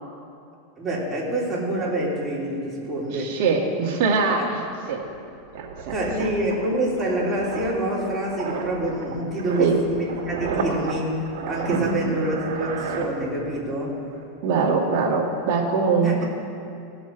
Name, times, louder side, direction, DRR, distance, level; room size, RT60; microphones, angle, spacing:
voice 1, 0.8-3.4 4.4-4.5 5.9-14.0 16.0-16.2, right 1 dB, 15° right, -6 dB, 3.3 m, -26 dB
voice 2, 3.1-4.6 4.9-5.0 5.5-6.3 9.6-9.8 11.7-12.2 14.4-16.2, right 4 dB, 55° right, -3 dB, 1.9 m, -23 dB
sound 1, 4.6-13.7 14.0-14.2, right 4 dB, 70° right, 2.1 m, -34 dB
17.5 x 7.1 x 4.6 m, 2.5 s
supercardioid pair, 130°, 0 cm